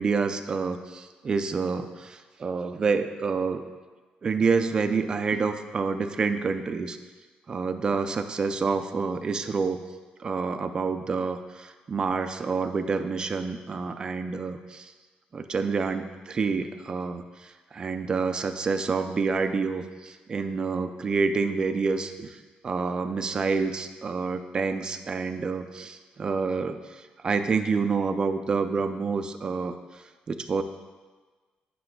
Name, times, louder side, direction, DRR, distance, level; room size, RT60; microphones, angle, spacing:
voice 1, 0.0-3.6 4.2-7.0 7.5-9.8 10.2-14.9 15.3-22.4 22.6-29.7 30.3-30.6, right 4 dB, 25° right, 8 dB, 0.3 m, -28 dB
9.9 x 5.8 x 2.2 m, 1.3 s
cardioid pair, 175°, 3 cm